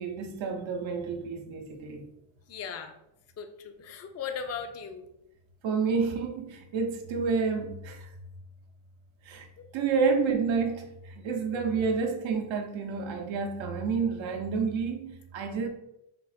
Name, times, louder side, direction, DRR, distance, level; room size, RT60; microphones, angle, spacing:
voice 1, 0.0-2.1 5.6-8.1 9.2-9.5 9.7-15.7, right 5 dB, 70° right, 0.8 m, -29 dB
voice 2, 2.5-2.9 3.4-5.1 11.5-11.6 15.4-15.6, left 6 dB, 35° left, 0.5 m, -38 dB
3.6 x 2.1 x 4.0 m
cardioid pair, 75°, 48 cm